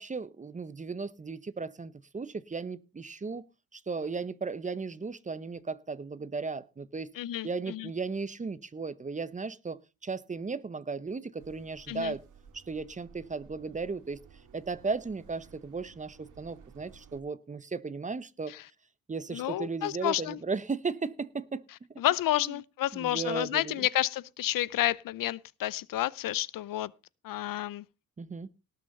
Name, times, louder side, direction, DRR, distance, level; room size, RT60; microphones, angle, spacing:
voice 1, 0.0-3.5 3.7-7.1 7.4-12.2 12.5-14.2 14.5-18.5 19.1-21.6 22.9-23.8 28.2-28.5, right 4 dB, 20° right, 0.8 m, -36 dB
voice 2, 7.1-7.9 11.9-12.1 18.5-18.7 19.3-20.4 22.0-26.9 27.2-27.8, left 14 dB, 75° left, 0.6 m, -30 dB
sound 1, 11.4-17.2, right 6 dB, 65° right, 2.1 m, -56 dB
18.5 x 6.6 x 5.3 m
cardioid pair, 135°, 34 cm